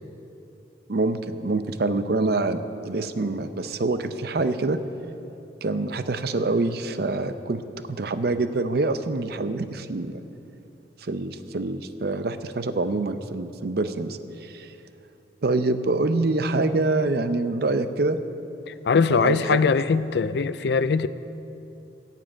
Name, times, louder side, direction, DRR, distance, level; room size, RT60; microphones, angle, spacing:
voice 1, 0.9-4.8 5.6-10.2 11.0-14.7 15.4-18.2 19.1-19.6, right 2 dB, 55° right, 10 dB, 0.6 m, -26 dB
voice 2, 18.7-21.1, left 5 dB, 60° left, 14 dB, 0.4 m, -21 dB
11.0 x 7.5 x 8.8 m, 2.9 s
head